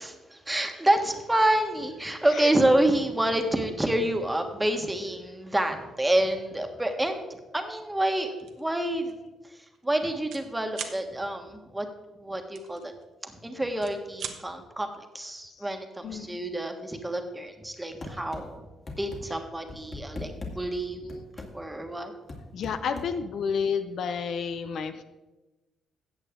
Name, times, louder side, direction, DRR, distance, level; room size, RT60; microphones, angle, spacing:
voice 1, 0.0-7.3 7.5-9.1 9.8-11.9 12.2-12.9 13.2-18.6 19.0-21.2 21.5-22.1, right 1 dB, 10° right, 5 dB, 1.4 m, -28 dB
sound 1, 8.4-8.6 9.1-9.3 9.5-10.4 10.7-11.0 12.5-13.3 13.7-14.4, right 7 dB, 70° right, 1.1 m, -39 dB
sound 2, 18.0-18.4 18.9-19.2 19.7-20.5 21.1-21.5 22.3-23.1, left 3 dB, 35° left, 2.3 m, -38 dB
voice 2, 22.5-25.0, left 6 dB, 65° left, 9 dB, 0.7 m, -30 dB
14.0 x 8.3 x 3.7 m, 1.1 s
cardioid pair, 90°, 0 cm